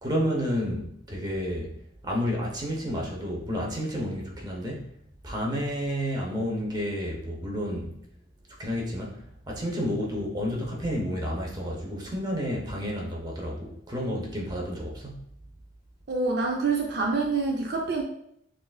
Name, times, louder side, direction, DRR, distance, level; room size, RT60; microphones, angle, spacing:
voice 1, 0.0-1.7 2.0-4.8 5.2-7.9 8.6-15.2, equal, 20° right, -2 dB, 0.7 m, -30 dB
voice 2, 16.1-18.0, right 4 dB, 55° right, 0 dB, 0.4 m, -26 dB
6.2 x 2.5 x 2.3 m, 0.71 s
head